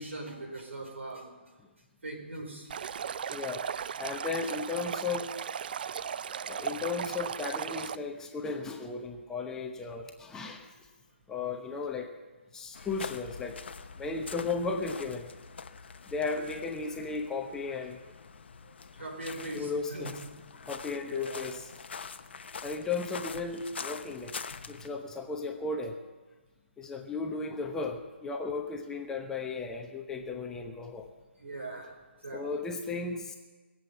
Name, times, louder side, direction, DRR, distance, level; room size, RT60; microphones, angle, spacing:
voice 1, 0.0-1.3 2.0-2.7 4.4-4.5 18.6-20.3 21.1-21.5 24.8-24.9 31.4-32.0 32.2-32.5, right 2 dB, 75° right, 2 dB, 4.8 m, -41 dB
Stream, 2.7-8.0, right 8 dB, 50° right, 0.4 m, -36 dB
voice 2, 3.3-3.6 4.0-5.4 6.5-10.7 11.3-12.1 12.5-13.6 14.0-15.3 16.1-18.0 19.5-20.2 20.6-21.7 22.6-24.3 24.7-26.0 26.8-31.1 32.3-33.4, left 4 dB, 10° left, 3 dB, 0.9 m, -35 dB
sound 1, 12.7-24.9, left 5 dB, 60° left, 0.9 m, -44 dB
21.0 x 7.8 x 8.3 m, 1.3 s
figure-of-eight pair, 150°, 7 cm